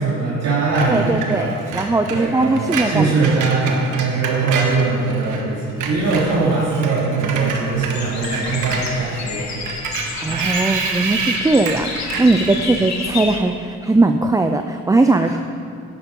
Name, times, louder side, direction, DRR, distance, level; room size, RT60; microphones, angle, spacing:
voice 1, 0.0-1.6 2.1-9.7 10.3-10.8 11.2-11.3 12.6-12.7, right 4 dB, 60° right, -7 dB, 2.9 m, -21 dB
Screech, 0.7-5.4 5.7-13.2, right 4 dB, 80° right, 1.5 m, -28 dB
voice 2, 0.9-3.1 10.2-15.4, right 2 dB, 10° right, 6 dB, 0.5 m, -19 dB
sound 1, 7.9-13.4, left 5 dB, 65° left, 1.5 m, -30 dB
12.0 x 10.5 x 5.4 m, 2.5 s
cardioid pair, 90°, 30 cm